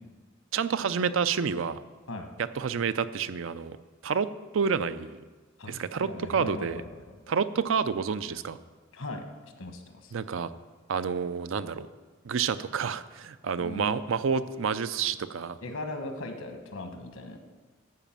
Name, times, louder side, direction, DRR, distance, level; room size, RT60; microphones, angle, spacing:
voice 1, 0.5-1.8 2.4-3.8 4.0-5.2 5.7-6.8 7.3-8.6 10.1-10.5 10.9-11.9 12.2-15.6, right 6 dB, 70° right, 13 dB, 0.5 m, -29 dB
voice 2, 5.6-7.3 8.9-9.2 9.6-10.1 13.6-14.0 15.6-17.5, left 1 dB, 80° left, 5 dB, 1.3 m, -39 dB
12.5 x 5.0 x 7.4 m, 1.4 s
head